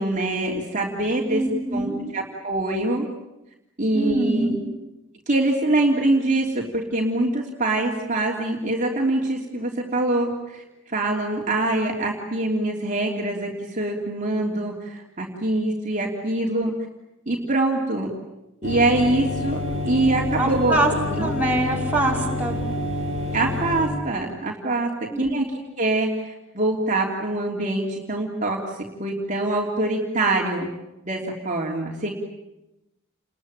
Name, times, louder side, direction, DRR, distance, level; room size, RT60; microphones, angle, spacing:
voice 1, 0.0-1.4 1.7-1.9 2.1-3.1 3.8-4.6 5.3-16.7 17.3-18.1 18.6-20.8 21.1-21.3 23.3-24.9 25.2-25.5 25.8-28.6 29.0-30.7 31.0-32.1, right 2 dB, 40° right, -1 dB, 3.1 m, -24 dB
voice 2, 1.3-2.0 3.9-4.6 20.4-20.9 21.2-22.6 25.1-25.4, right 2 dB, 10° right, -3 dB, 5.3 m, -24 dB
sound 1, 18.6-23.9, left 2 dB, 65° left, 5.9 m, -28 dB
30.0 x 21.5 x 9.0 m, 0.95 s
head